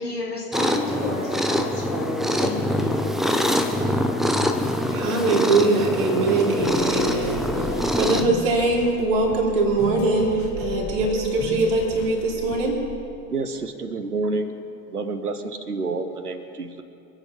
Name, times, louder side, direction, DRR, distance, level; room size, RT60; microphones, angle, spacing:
voice 1, 0.0-3.1, left 2 dB, 90° left, -2 dB, 2.8 m, -31 dB
sound 1, 0.5-8.2, equal, ahead, 0.9 m, -24 dB
voice 2, 4.9-12.8, right 3 dB, 50° right, -2 dB, 4.3 m, -22 dB
sound 2, 5.0-11.9, left 10 dB, 30° left, 3.2 m, -34 dB
sound 3, 6.6-12.9, left 2 dB, 70° left, 3.8 m, -35 dB
voice 3, 13.3-14.5 14.9-16.8, right 3 dB, 85° right, 9 dB, 1.1 m, -28 dB
27.0 x 9.1 x 5.6 m, 2.6 s
figure-of-eight pair, 85°, 45 cm